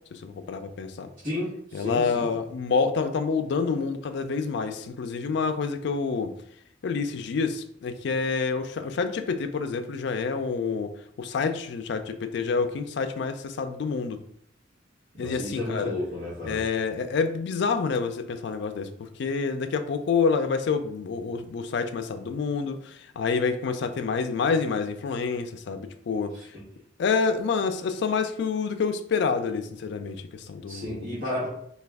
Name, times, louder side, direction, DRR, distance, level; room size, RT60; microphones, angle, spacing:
voice 1, 0.1-1.1 1.7-6.3 6.8-10.9 11.2-14.2 15.2-15.9 16.4-26.3 27.0-31.1, left 5 dB, 60° left, 9 dB, 0.3 m, -28 dB
voice 2, 1.2-2.3 15.1-16.6 30.7-31.5, left 1 dB, 45° right, -11 dB, 1.2 m, -32 dB
3.2 x 2.3 x 3.4 m, 0.68 s
head